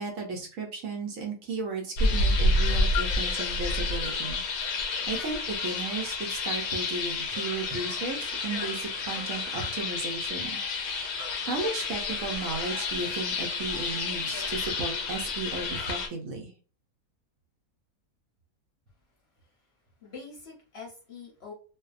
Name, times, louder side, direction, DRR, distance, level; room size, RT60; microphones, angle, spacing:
voice 1, 0.0-4.4 4.7-10.6 11.4-16.5, right 3 dB, 70° right, 1 dB, 0.9 m, -35 dB
sound 1, 2.0-16.1, left 3 dB, 85° left, 1.1 m, -29 dB
voice 2, 19.3-19.7 20.0-21.5, left 4 dB, 55° left, -3 dB, 0.8 m, -45 dB
2.5 x 2.0 x 2.4 m, 0.37 s
omnidirectional pair, 1.5 m